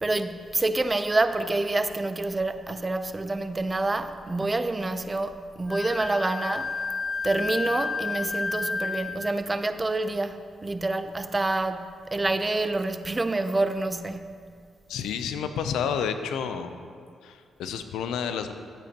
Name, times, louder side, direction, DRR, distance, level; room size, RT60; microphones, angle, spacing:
voice 1, 0.0-6.8 7.2-14.4, right 2 dB, 25° right, 0.5 m, -27 dB
Wind instrument woodwind instrument, 5.7-9.4, left 4 dB, 30° left, 0.5 m, -31 dB
voice 2, 14.9-16.7 17.2-18.5, left 7 dB, 85° left, 0.5 m, -30 dB
11.5 x 8.6 x 2.9 m
supercardioid pair, 65°, 0 cm